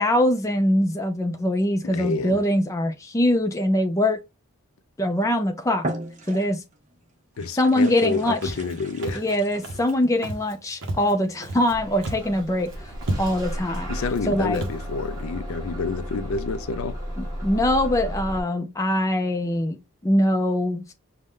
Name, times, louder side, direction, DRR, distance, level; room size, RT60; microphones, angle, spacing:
voice 1, 0.0-4.2 5.0-5.9 6.3-6.6 7.5-8.5 9.1-12.9 13.2-13.9 14.3-14.6 17.2-20.9, left 1 dB, 15° left, 0.4 m, -23 dB
voice 2, 1.8-2.4 7.4-9.2 13.9-17.0, left 4 dB, 70° left, 0.4 m, -28 dB
sound 1, 5.1-5.3 5.8-6.8 7.3-10.1, right 1 dB, 35° right, 0.5 m, -37 dB
Walk footsteps, 8.4-8.7 9.0-9.3 9.6-9.9 10.2-10.5 10.8-11.7 12.0-12.4 12.7-12.8 13.0-13.5 14.1-14.2 14.5-14.8, right 1 dB, 55° right, 0.9 m, -32 dB
Bus / Engine starting, 11.7-18.4, equal, 15° right, 1.4 m, -34 dB
5.2 x 2.2 x 3.6 m
head